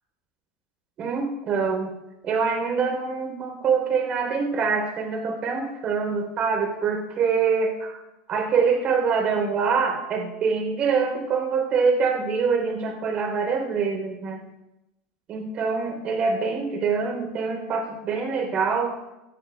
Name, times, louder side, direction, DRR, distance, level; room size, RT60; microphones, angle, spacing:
voice 1, 1.0-1.9 2.2-8.0 8.3-14.4 15.3-19.0, right 5 dB, 40° right, 3 dB, 3.6 m, -25 dB
18.5 x 13.5 x 2.3 m, 0.92 s
supercardioid pair, 120°, 3 cm